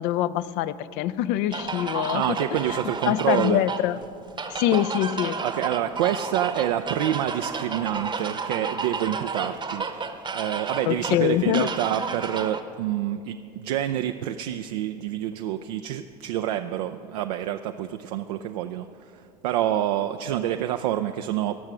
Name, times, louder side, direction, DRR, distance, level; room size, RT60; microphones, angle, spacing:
voice 1, 0.0-2.4 2.7-2.8 3.1-4.0 4.5-5.4 10.9-11.7, left 12 dB, 55° left, 16 dB, 0.5 m, -24 dB
sound 1, 1.5-12.6, right 4 dB, 25° right, 0.9 m, -32 dB
voice 2, 2.1-3.6 5.4-21.6, right 12 dB, 75° right, 7 dB, 0.4 m, -27 dB
17.0 x 6.4 x 6.0 m, 2.5 s
hypercardioid pair, 75°, 21 cm